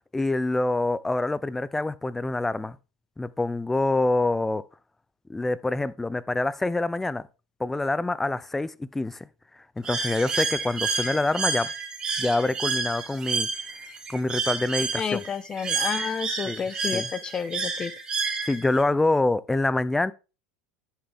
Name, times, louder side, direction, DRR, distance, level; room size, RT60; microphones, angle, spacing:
voice 1, 0.0-2.8 3.2-4.6 5.3-7.2 7.6-9.3 9.8-11.7 12.2-13.5 14.1-15.2 16.5-16.6 16.9-17.1 18.4-20.1, left 2 dB, 10° left, 0.6 m, -26 dB
Bird, 9.8-18.8, right 4 dB, 30° right, 2.6 m, -30 dB
voice 2, 15.0-17.9, left 6 dB, 30° left, 1.1 m, -30 dB
10.0 x 7.6 x 3.6 m
hypercardioid pair, 80°, 3 cm